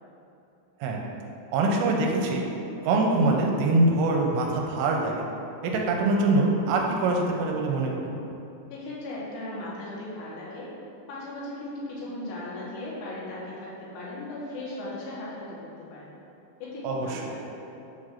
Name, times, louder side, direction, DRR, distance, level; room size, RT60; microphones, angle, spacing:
voice 1, 1.5-2.5 2.8-5.3 5.6-8.2 16.8-17.3, right 2 dB, 85° right, 0 dB, 2.8 m, -24 dB
voice 2, 8.7-10.7 11.1-16.1 16.6-17.6, left 1 dB, 75° left, -7 dB, 3.3 m, -37 dB
7.5 x 2.5 x 5.7 m, 2.9 s
omnidirectional pair, 5.0 m